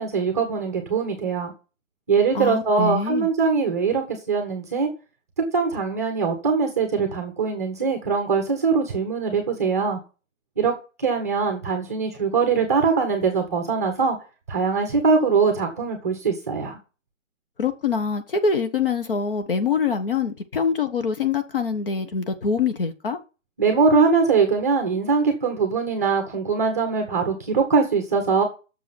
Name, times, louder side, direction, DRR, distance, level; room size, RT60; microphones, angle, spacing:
voice 1, 0.0-1.5 2.1-4.9 5.5-10.0 10.6-10.7 11.0-14.2 14.5-16.8 23.6-28.4, right 5 dB, 10° right, 0.9 m, -22 dB
voice 2, 2.3-3.3 17.6-23.2, left 5 dB, 45° left, 1.3 m, -24 dB
7.5 x 6.6 x 7.1 m
hypercardioid pair, 175°, 40 cm